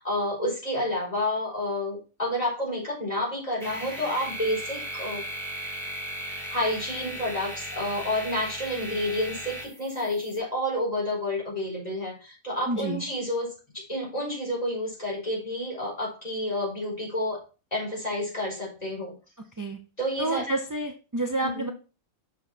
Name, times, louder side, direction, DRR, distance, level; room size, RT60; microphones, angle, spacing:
voice 1, 0.0-5.2 6.5-13.5 13.7-17.4 17.7-19.1 20.0-20.5 21.4-21.7, left 1 dB, 25° left, -3 dB, 4.9 m, -29 dB
sound 1, 3.6-10.4, equal, ahead, 3.0 m, -37 dB
voice 2, 12.7-13.0 19.6-19.8 20.2-21.7, right 2 dB, 25° right, 5 dB, 0.4 m, -29 dB
7.0 x 6.1 x 4.5 m, 0.33 s
omnidirectional pair, 1.5 m